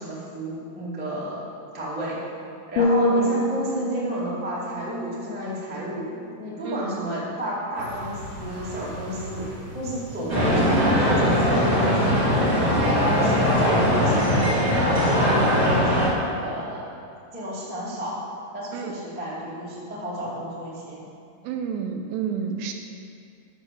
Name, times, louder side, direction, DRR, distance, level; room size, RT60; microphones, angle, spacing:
voice 1, 0.0-1.4 1.7-2.2 2.7-6.0 6.4-12.3 13.2-15.9 16.2-16.8 17.3-18.2 18.5-21.0 22.3-22.6, equal, 10° right, -8 dB, 0.4 m, -32 dB
sound 1, 2.8-6.7 7.1-7.4, left 1 dB, 75° left, 2.5 m, -27 dB
voice 2, 6.6-7.0 18.7-18.9 21.4-22.7, right 7 dB, 85° right, 4 dB, 2.6 m, -30 dB
sound 2, 7.7-13.7, equal, 50° right, 3.7 m, -38 dB
sound 3, 10.3-16.1, equal, 30° right, 1.0 m, -20 dB
9.1 x 6.3 x 7.6 m, 2.5 s
omnidirectional pair, 5.1 m